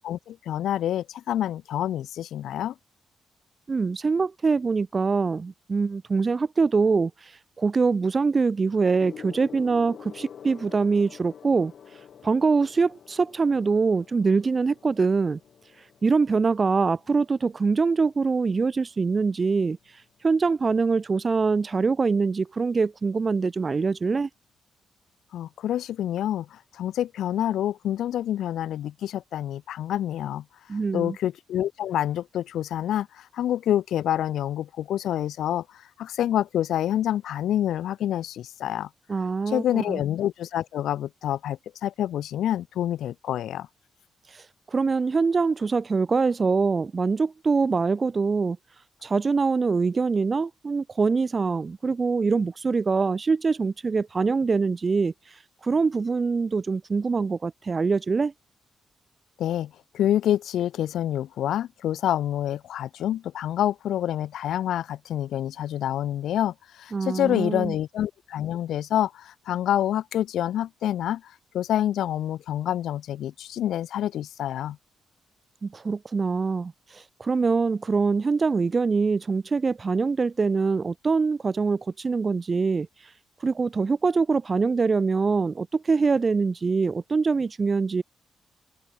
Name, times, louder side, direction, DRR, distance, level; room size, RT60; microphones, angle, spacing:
voice 1, 0.0-2.7 25.3-30.4 30.9-38.9 39.5-43.7 59.4-74.8, left 11 dB, 85° left, 2.1 m, -27 dB
voice 2, 3.7-11.7 12.2-15.4 16.0-24.3 30.7-31.2 39.1-40.0 44.3-48.6 49.0-58.3 66.9-67.7 75.6-83.1 83.4-88.0, right 4 dB, 30° right, 1.3 m, -24 dB
Gong, 9.0-18.7 19.7-20.0, left 8 dB, 60° left, 6.7 m, -47 dB
open air
cardioid pair, 125°, 0 cm